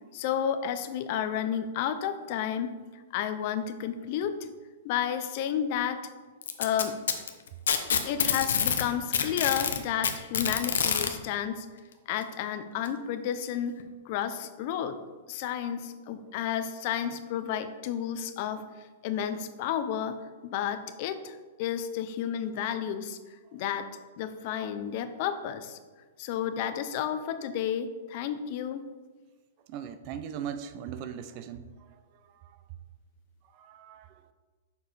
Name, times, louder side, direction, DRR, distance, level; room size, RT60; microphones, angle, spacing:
voice 1, 0.1-2.7 3.1-4.4 4.8-6.0 6.6-7.0 8.0-11.7 12.1-15.0 15.3-23.2 23.5-23.9 24.2-25.8 26.2-28.8, left 9 dB, 40° left, 10 dB, 0.5 m, -31 dB
Packing tape duct tape, 6.4-8.9 9.1-11.1 12.2-12.3 12.9-13.0 13.8-13.9, left 7 dB, 85° left, 0.7 m, -26 dB
voice 2, 29.7-31.7 33.5-34.1, right 8 dB, 35° right, 11 dB, 0.5 m, -38 dB
6.6 x 4.7 x 4.2 m, 1.4 s
hypercardioid pair, 155°, 0 cm